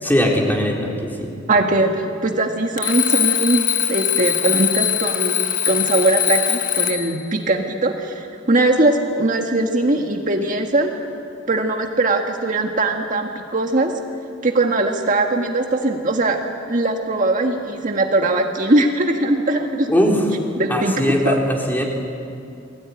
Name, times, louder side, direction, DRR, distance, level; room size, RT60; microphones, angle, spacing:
voice 1, 0.0-1.3 19.9-20.3 20.7-21.8, equal, 10° left, -1 dB, 3.9 m, -19 dB
voice 2, 1.5-5.4 5.6-10.9 11.5-13.9 14.4-16.4 16.7-19.9 20.6-20.9 21.2-21.4, right 2 dB, 40° right, 3 dB, 1.7 m, -20 dB
Alarm, 2.8-7.2, left 10 dB, 45° left, 1.3 m, -21 dB
29.5 x 21.0 x 9.8 m, 2.6 s
head